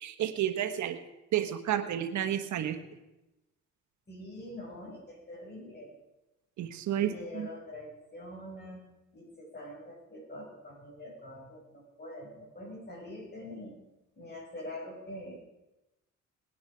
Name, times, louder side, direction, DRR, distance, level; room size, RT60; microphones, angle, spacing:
voice 1, 0.0-1.0 1.3-2.8 6.6-7.5, right 10 dB, 70° right, 8 dB, 1.2 m, -31 dB
voice 2, 4.1-5.9 7.0-8.8 9.1-13.8 14.2-15.5, left 1 dB, 35° left, -2 dB, 6.7 m, -44 dB
19.0 x 10.0 x 5.0 m, 0.98 s
cardioid pair, 90°, 30 cm